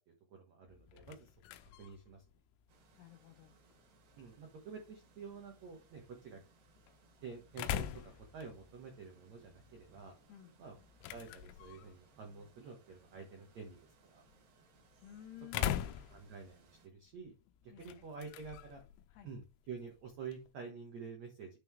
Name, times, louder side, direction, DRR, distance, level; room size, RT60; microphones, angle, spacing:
voice 1, 0.3-1.3 1.8-2.2 4.1-6.4 7.2-10.1 10.6-10.7 11.1-13.8 14.1-14.2 15.5-15.6 16.1-17.3 17.6-18.8 19.2-21.5, right 5 dB, 85° right, 1.5 m, -49 dB
sound 1, 0.7-20.5, left 11 dB, 90° left, 3.1 m, -46 dB
sound 2, 2.7-16.9, right 5 dB, 65° right, 3.9 m, -68 dB
voice 2, 2.9-3.5 10.3-10.5 15.0-15.8 17.7-17.9 19.1-19.3, left 12 dB, 70° left, 2.7 m, -53 dB
9.4 x 3.7 x 4.6 m
omnidirectional pair, 5.5 m